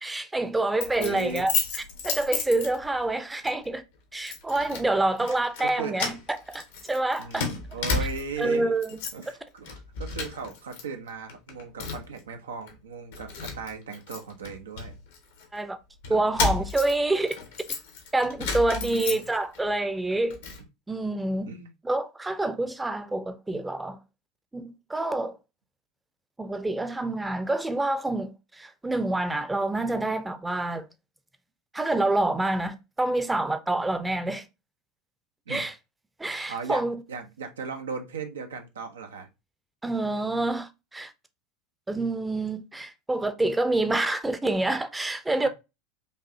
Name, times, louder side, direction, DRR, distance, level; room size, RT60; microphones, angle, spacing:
voice 1, 0.0-1.5 2.0-3.8 4.1-6.1 6.5-7.5 8.4-9.0 15.5-15.8 16.1-17.4 18.1-20.4 20.9-21.5 21.8-24.0 24.5-25.4 26.4-30.8 31.7-34.4 35.5-35.7 36.2-37.0 39.8-41.1 41.9-45.5, right 2 dB, 10° right, 0.7 m, -27 dB
Keys jangling, 0.8-3.1 3.5-3.7 4.3-4.9 5.2-5.7 5.9-8.4 8.8-9.3 9.6-10.8 11.1-12.2 12.7-12.8 13.1-15.5 16.0-19.6 20.0-20.6, left 5 dB, 70° left, 1.3 m, -33 dB
voice 2, 0.9-1.5 5.2-6.0 7.2-8.7 9.1-14.9 16.1-16.2 18.6-19.2 21.5-21.7 35.5-35.6 36.5-36.8 37.1-39.3 45.4-45.5, right 5 dB, 80° right, 0.9 m, -37 dB
5.3 x 2.7 x 2.7 m
hypercardioid pair, 80°, 0 cm